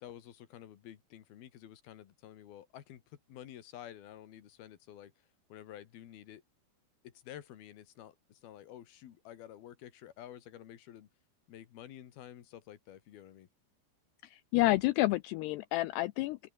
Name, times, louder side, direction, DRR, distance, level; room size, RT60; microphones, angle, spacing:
voice 1, 0.0-5.1 5.5-6.4 7.0-11.1 11.5-13.5, left 11 dB, 65° left, 3.4 m, -50 dB
voice 2, 14.2-16.4, left 18 dB, 80° left, 2.4 m, -29 dB
omnidirectional pair, 5.3 m